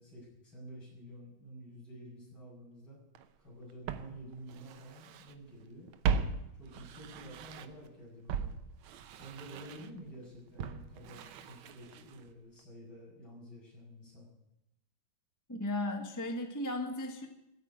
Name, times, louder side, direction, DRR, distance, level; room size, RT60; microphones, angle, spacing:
voice 1, 0.0-3.0 3.4-5.9 6.6-8.6 9.1-14.3, right 1 dB, 75° left, -4 dB, 7.3 m, -50 dB
Walk footsteps, 3.2-3.3 3.9-5.4 5.6-7.9 8.3-12.3 12.6-12.7, right 6 dB, 90° right, 1.7 m, -38 dB
voice 2, 15.5-17.3, left 1 dB, 10° left, 4 dB, 1.1 m, -35 dB
14.5 x 8.5 x 9.6 m, 0.89 s
omnidirectional pair, 2.2 m